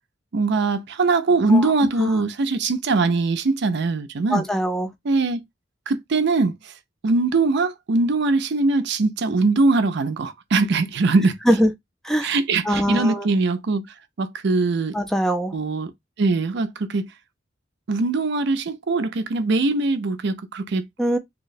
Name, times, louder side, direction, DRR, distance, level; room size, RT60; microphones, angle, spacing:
voice 1, 0.3-4.5 5.0-5.4 5.9-6.7 7.0-11.4 12.2-13.9 14.2-14.9 15.5-15.9 16.2-17.1 17.9-20.9, right 3 dB, 60° right, 0.5 m, -21 dB
voice 2, 4.3-4.9 11.5-11.7 12.0-12.3 12.6-13.3 14.9-15.6 21.0-21.2, equal, ahead, 0.5 m, -21 dB
2.8 x 2.1 x 3.9 m
head